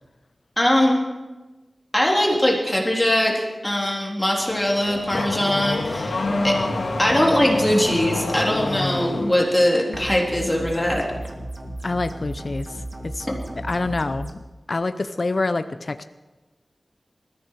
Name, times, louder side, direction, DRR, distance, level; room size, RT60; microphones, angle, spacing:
voice 1, 0.6-1.0 1.9-6.5 7.0-11.1, left 1 dB, 15° left, -2 dB, 3.5 m, -21 dB
Car / Accelerating revving vroom, 4.4-9.4, left 2 dB, 85° left, 2.1 m, -27 dB
sound 1, 9.9-14.3, right 1 dB, 30° right, 1.9 m, -35 dB
voice 2, 11.8-12.7 13.0-13.3 13.6-14.4 14.7-16.0, left 3 dB, 50° left, 10 dB, 0.6 m, -26 dB
20.5 x 14.0 x 4.8 m, 1.1 s
wide cardioid pair, 85°, 0 cm